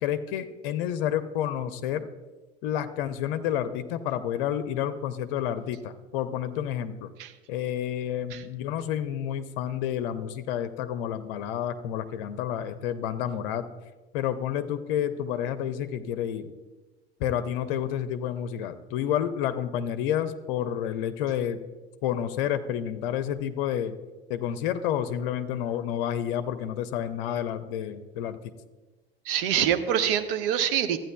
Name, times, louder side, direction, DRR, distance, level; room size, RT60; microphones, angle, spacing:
voice 1, 0.0-2.1 2.6-7.1 7.5-13.7 14.1-16.5 17.2-21.6 22.0-23.9 24.3-28.5, left 10 dB, 65° left, 11 dB, 0.6 m, -30 dB
voice 2, 29.3-31.0, right 9 dB, 70° right, 9 dB, 0.8 m, -25 dB
14.5 x 8.8 x 2.3 m, 1.2 s
figure-of-eight pair, 65°, 29 cm